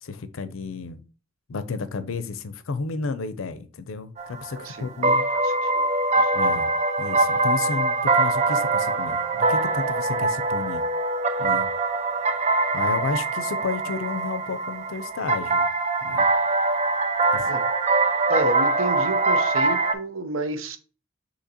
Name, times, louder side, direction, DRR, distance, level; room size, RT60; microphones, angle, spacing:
voice 1, 0.0-1.0 1.5-5.3 6.3-6.7 7.0-10.8 11.4-11.7 12.7-15.7 16.0-16.3 17.3-17.6, left 4 dB, 75° left, 0.5 m, -32 dB
sound 1, 4.2-19.9, right 3 dB, 35° right, 0.4 m, -23 dB
voice 2, 4.6-5.8 6.2-6.3 17.4-17.6 18.3-20.8, right 1 dB, 80° right, 0.7 m, -31 dB
6.5 x 2.9 x 2.8 m
head